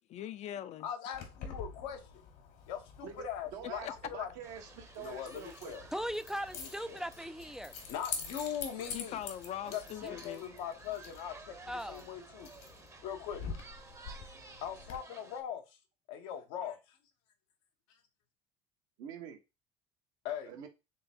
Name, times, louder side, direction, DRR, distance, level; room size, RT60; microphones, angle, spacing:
voice 1, 0.1-0.9 3.6-3.9 8.9-10.4, left 11 dB, 55° left, 0.5 m, -41 dB
voice 2, 0.8-2.0 2.7-4.3 5.0-5.8 6.5-7.0 7.9-9.2 9.7-11.6 11.9-12.5 13.0-13.4 14.6-15.6 16.1-17.0 20.2-20.7, left 9 dB, 85° left, 1.0 m, -40 dB
Keys jangling, 1.1-15.0, left 5 dB, 70° left, 1.4 m, -47 dB
voice 3, 3.0-5.7 19.0-19.4 20.5-20.7, right 8 dB, 75° right, 1.2 m, -46 dB
sound 1, 4.4-15.4, right 3 dB, 20° right, 0.8 m, -55 dB
voice 4, 5.9-7.7 10.0-10.1 11.7-12.1, equal, 5° right, 0.3 m, -39 dB
3.8 x 3.2 x 4.3 m
supercardioid pair, 90°, 14 cm